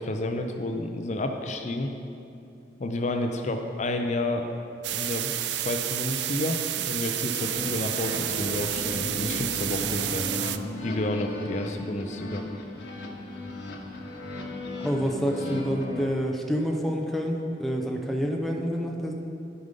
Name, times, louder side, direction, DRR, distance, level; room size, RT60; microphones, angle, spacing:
voice 1, 0.0-1.9 2.8-4.5 4.9-10.3 10.8-12.4, left 2 dB, 40° left, 5 dB, 0.5 m, -30 dB
sound 1, 4.8-10.6, right 13 dB, 80° right, 0.4 m, -30 dB
sound 2, 7.3-16.0, left 1 dB, 85° left, 1.1 m, -36 dB
sound 3, 7.8-13.4, right 1 dB, 25° left, 1.5 m, -44 dB
voice 2, 14.8-19.1, equal, ahead, 1 dB, 0.7 m, -28 dB
11.5 x 5.3 x 5.2 m, 2.7 s
head